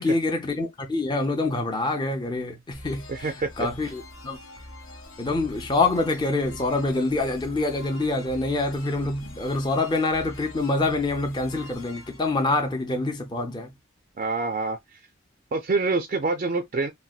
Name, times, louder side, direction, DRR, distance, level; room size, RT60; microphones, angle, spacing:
voice 1, 0.0-4.4 5.2-13.7, left 2 dB, 20° left, 0.5 m, -26 dB
sound 1, 2.7-13.3, left 1 dB, 70° left, 0.9 m, -44 dB
voice 2, 3.1-3.7 14.2-14.8 15.5-16.9, right 3 dB, 35° right, 0.3 m, -26 dB
4.0 x 2.2 x 2.3 m
head